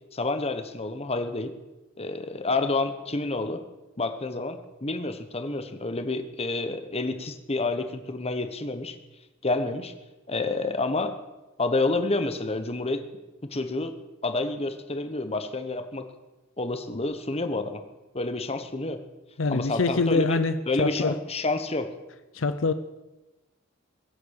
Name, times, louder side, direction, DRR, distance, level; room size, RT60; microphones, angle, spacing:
voice 1, 0.1-1.5 2.0-3.6 4.0-8.9 9.4-9.9 10.3-11.2 11.6-13.1 13.4-13.9 14.2-16.1 16.6-17.8 18.1-19.0 19.5-20.4 20.7-21.9, left 2 dB, 30° left, 9 dB, 1.3 m, -29 dB
voice 2, 19.4-21.1 22.3-22.7, left 3 dB, 65° left, 11 dB, 0.7 m, -25 dB
22.5 x 8.4 x 6.6 m, 1.1 s
head